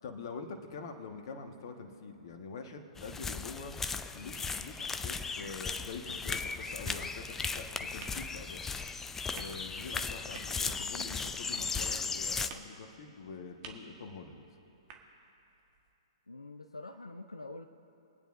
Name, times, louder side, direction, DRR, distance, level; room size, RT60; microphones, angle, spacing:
voice 1, 0.0-3.7 4.1-8.6 9.3-14.4, left 4 dB, 50° left, 4 dB, 1.4 m, -45 dB
sound 1, 3.0-12.5, left 4 dB, 10° left, 0.4 m, -37 dB
sound 2, 6.8-15.9, right 5 dB, 35° right, 1.4 m, -55 dB
voice 2, 16.3-17.7, left 2 dB, 90° left, 5 dB, 0.6 m, -45 dB
23.0 x 9.2 x 2.6 m, 2.8 s
figure-of-eight pair, 115°, 3 cm